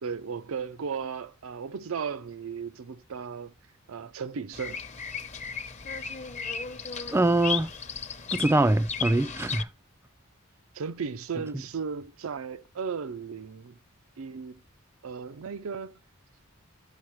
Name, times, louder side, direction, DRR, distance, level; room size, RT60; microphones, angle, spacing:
voice 1, 0.0-3.5 3.9-4.8 10.7-13.8 14.2-14.6 15.0-16.0, right 6 dB, 75° right, 0.5 m, -35 dB
Bird vocalization bird call bird song, 4.5-9.6, left 5 dB, 35° left, 0.9 m, -35 dB
voice 2, 7.1-7.7 8.3-9.7, right 2 dB, 10° right, 0.3 m, -23 dB
10.0 x 6.4 x 3.1 m
head